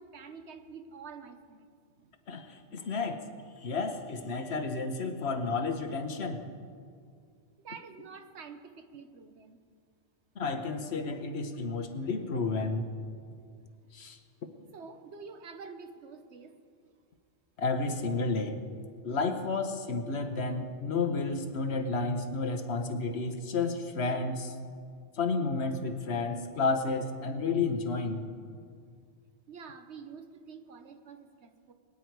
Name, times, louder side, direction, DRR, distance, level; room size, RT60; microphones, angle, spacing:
voice 1, 0.0-1.7 2.0-2.1 7.6-9.6 14.7-16.5 29.5-31.7, right 5 dB, 75° right, 7 dB, 1.2 m, -47 dB
voice 2, 2.3-3.3 3.6-6.4 10.4-12.8 13.9-14.2 17.6-18.6 19.0-24.5 25.1-28.2, left 3 dB, 70° left, 7 dB, 1.3 m, -31 dB
22.5 x 9.6 x 4.6 m, 2.1 s
omnidirectional pair, 1.2 m